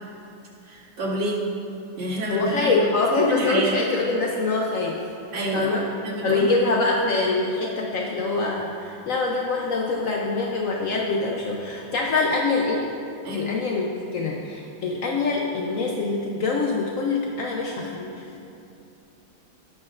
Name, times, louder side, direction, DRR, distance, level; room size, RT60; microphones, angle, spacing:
voice 1, 0.6-1.4 2.0-2.8 3.2-3.8 5.3-5.7 6.0-6.8 13.2-13.5, right 1 dB, 90° right, -8 dB, 3.2 m, -28 dB
voice 2, 2.3-5.0 5.5-5.8 6.2-12.9 13.3-18.2, left 3 dB, 75° left, -2 dB, 0.7 m, -24 dB
17.5 x 6.5 x 2.5 m, 2.7 s
omnidirectional pair, 2.3 m